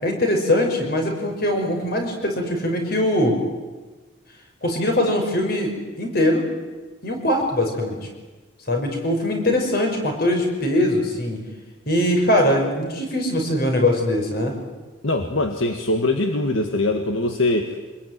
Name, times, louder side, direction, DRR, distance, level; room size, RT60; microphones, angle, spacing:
voice 1, 0.0-3.4 4.6-6.4 7.0-8.0 8.7-11.4 11.9-14.5, left 1 dB, 50° left, 3 dB, 5.8 m, -21 dB
voice 2, 15.0-17.8, left 2 dB, 70° left, 5 dB, 1.8 m, -22 dB
26.0 x 21.5 x 9.6 m, 1.3 s
head